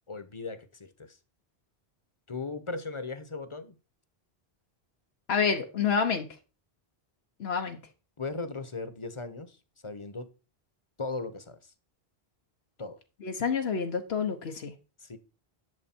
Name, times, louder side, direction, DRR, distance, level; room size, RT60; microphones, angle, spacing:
voice 1, 0.1-1.2 2.3-3.8 8.2-9.6 9.8-10.3 11.0-11.7 12.8-13.0 15.0-15.2, left 3 dB, 30° left, 1.0 m, -37 dB
voice 2, 5.3-6.3 7.4-7.8 13.2-14.7, left 6 dB, 85° left, 1.3 m, -28 dB
11.0 x 6.5 x 4.4 m
omnidirectional pair, 1.0 m